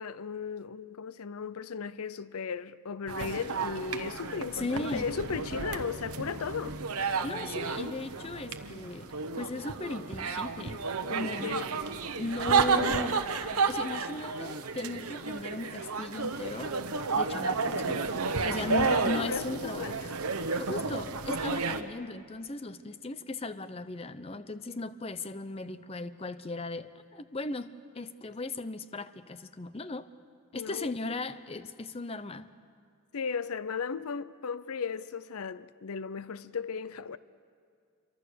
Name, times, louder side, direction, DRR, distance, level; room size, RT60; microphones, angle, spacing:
voice 1, 0.0-6.8 11.4-11.7 18.7-20.1 30.5-30.9 33.1-37.2, left 5 dB, 85° left, 0.6 m, -36 dB
sound 1, 3.1-21.8, right 4 dB, 90° right, 1.1 m, -32 dB
voice 2, 4.5-5.1 7.2-10.8 11.1-11.6 12.2-13.2 13.7-16.8 17.2-18.1 18.4-19.9 20.6-30.1 30.5-32.5, left 2 dB, 25° left, 0.6 m, -37 dB
27.5 x 24.0 x 6.7 m
head